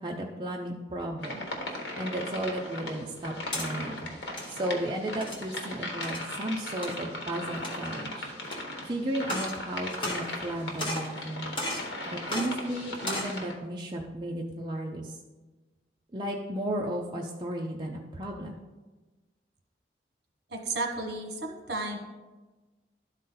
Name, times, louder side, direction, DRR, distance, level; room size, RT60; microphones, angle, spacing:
voice 1, 0.0-8.3 8.9-11.5 12.1-15.2 16.1-18.6, right 1 dB, 25° right, -1 dB, 0.5 m, -34 dB
sound 1, 1.2-13.5, left 1 dB, 75° left, 1.3 m, -38 dB
sound 2, 3.2-3.7 4.2-4.5 5.2-5.5 6.0-6.3 6.8-7.0 7.5-8.0 8.5-8.6 9.2-9.6 9.9-10.5 10.8-11.1 11.6-11.9 12.3-12.5 12.9-13.3, left 1 dB, 25° left, 1.4 m, -34 dB
voice 2, 20.5-22.0, right 2 dB, 65° right, 2 dB, 1.2 m, -33 dB
12.0 x 4.1 x 3.9 m, 1.2 s
head